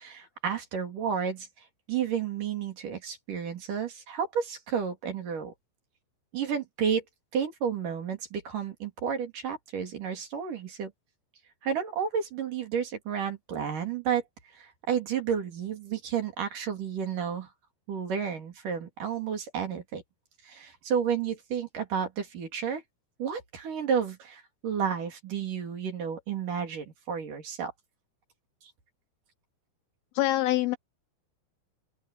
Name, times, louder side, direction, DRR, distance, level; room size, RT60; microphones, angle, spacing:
voice 1, 0.0-1.5 1.9-5.5 6.3-7.0 7.3-10.9 11.6-14.2 14.6-17.5 17.9-20.0 20.4-22.8 23.2-27.7, right 7 dB, 50° right, 4.3 m, -31 dB
voice 2, 30.2-30.8, left 16 dB, 80° left, 2.3 m, -24 dB
open air
omnidirectional pair, 5.0 m